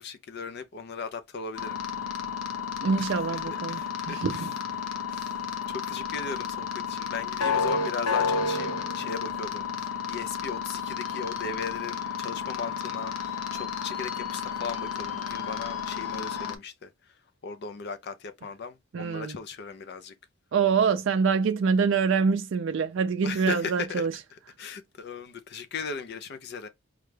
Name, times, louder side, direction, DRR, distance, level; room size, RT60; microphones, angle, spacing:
voice 1, 0.0-1.8 3.0-3.4 3.7-4.5 4.8-5.3 5.7-16.9 17.4-20.1 23.2-26.7, left 5 dB, 50° left, 0.4 m, -37 dB
sound 1, 1.6-16.6, left 6 dB, 85° left, 0.7 m, -32 dB
voice 2, 2.8-4.5 18.9-19.4 20.5-24.1, right 5 dB, 55° right, 0.3 m, -25 dB
4.9 x 2.2 x 3.2 m
head